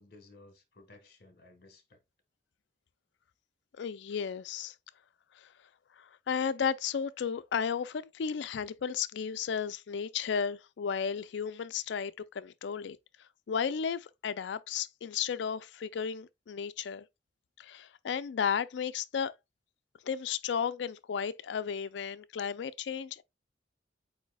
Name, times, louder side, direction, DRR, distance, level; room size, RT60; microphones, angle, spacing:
voice 1, 0.0-2.0, left 2 dB, 55° left, 1.3 m, -57 dB
voice 2, 3.8-4.7 5.4-5.5 6.0-13.0 13.5-17.1 17.6-19.3 20.0-23.2, left 7 dB, 70° left, 0.4 m, -34 dB
8.0 x 2.7 x 2.2 m
head